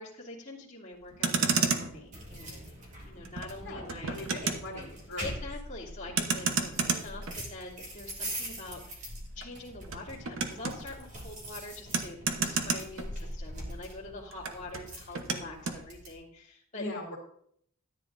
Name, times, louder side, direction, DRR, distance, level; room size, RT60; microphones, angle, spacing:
voice 1, 0.0-2.7 3.0-4.6 5.2-16.8, left 2 dB, 35° left, -5 dB, 2.7 m, -45 dB
Motor vehicle (road), 1.0-13.7 13.9-15.8, right 5 dB, 75° right, 1.1 m, -34 dB
sound 1, 2.1-16.2, right 1 dB, 35° right, 2.4 m, -43 dB
voice 2, 4.1-5.3 16.7-17.2, left 2 dB, 60° left, -6 dB, 2.5 m, -39 dB
13.5 x 9.5 x 2.6 m, 0.67 s
head